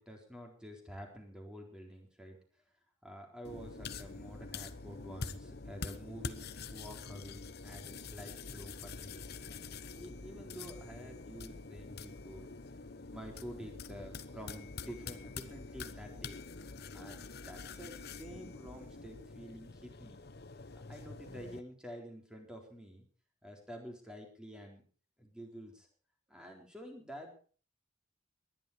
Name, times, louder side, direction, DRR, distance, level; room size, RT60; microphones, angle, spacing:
voice 1, 0.0-2.4 3.0-9.3 9.9-12.5 13.1-16.4 16.9-20.2 20.7-23.1 23.4-24.8 25.2-25.9 26.3-27.3, equal, 5° right, 1 dB, 4.0 m, -49 dB
sound 1, 3.4-21.6, left 4 dB, 55° left, 1.0 m, -46 dB
20.0 x 11.5 x 4.9 m, 0.41 s
head